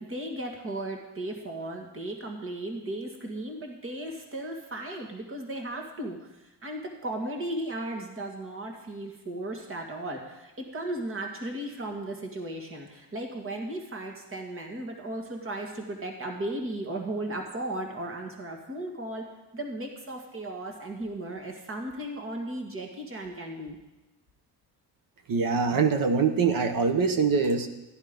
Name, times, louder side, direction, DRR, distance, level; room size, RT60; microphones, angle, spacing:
voice 1, 0.0-6.2 6.6-19.2 19.5-23.8, right 1 dB, 30° right, 3 dB, 2.1 m, -36 dB
voice 2, 25.3-27.7, right 5 dB, 55° right, 8 dB, 1.3 m, -24 dB
14.0 x 10.5 x 5.3 m, 1.0 s
cardioid pair, 135°, 40 cm